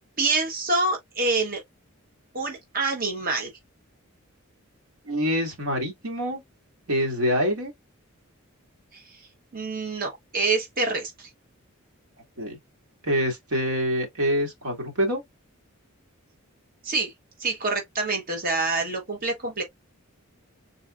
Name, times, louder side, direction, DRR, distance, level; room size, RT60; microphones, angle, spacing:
voice 1, 0.2-1.6 2.3-3.5 8.9-9.2 9.5-11.3 16.8-17.1 17.4-19.6, right 3 dB, 40° right, 1.2 m, -26 dB
voice 2, 5.1-6.4 6.9-7.7 12.4-12.6 13.0-15.2, equal, 90° right, 1.9 m, -25 dB
4.0 x 3.8 x 2.4 m
head